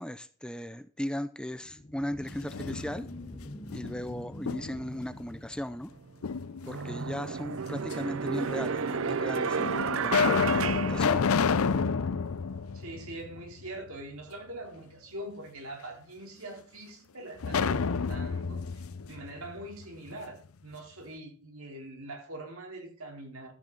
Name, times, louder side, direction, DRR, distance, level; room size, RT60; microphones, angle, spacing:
voice 1, 0.0-3.1 3.7-5.9 6.7-11.2, equal, 5° left, 12 dB, 0.5 m, -37 dB
sound 1, 1.6-6.6, left 1 dB, 25° left, 1.2 m, -45 dB
sound 2, 2.3-3.3 3.7-5.0 6.2-7.0 7.9-8.0 8.9-9.0 9.6-13.7 14.0-14.1 17.4-20.2, left 5 dB, 85° left, 0.6 m, -29 dB
sound 3, 5.9-6.0 6.6-11.8, right 5 dB, 70° right, 0.6 m, -32 dB
voice 2, 12.7-23.5, right 1 dB, 90° right, 1 dB, 4.3 m, -43 dB
13.5 x 9.1 x 4.0 m, 0.42 s
head